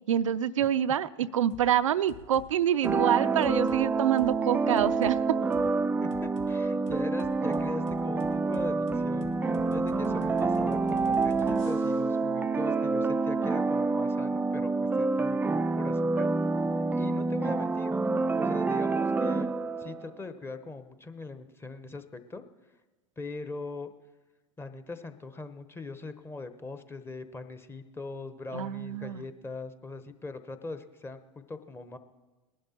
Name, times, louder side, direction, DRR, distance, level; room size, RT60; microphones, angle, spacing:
voice 1, 0.1-5.2 28.5-29.2, right 10 dB, 85° right, 12 dB, 0.4 m, -26 dB
sound 1, 1.5-1.7 2.1-2.5 2.8-3.0 3.4-3.8 4.2-4.3 4.8-5.2 5.5-5.7 6.1-6.5 6.9-12.2, left 4 dB, 80° left, 2.0 m, -47 dB
sound 2, 2.8-20.1, right 3 dB, 10° right, 0.3 m, -27 dB
voice 2, 6.0-16.3 17.0-18.0 18.4-19.5 19.8-22.4 23.2-23.9 24.6-32.0, left 3 dB, 15° left, 9 dB, 0.9 m, -41 dB
19.5 x 11.0 x 4.3 m, 1.2 s
hypercardioid pair, 95°, 16 cm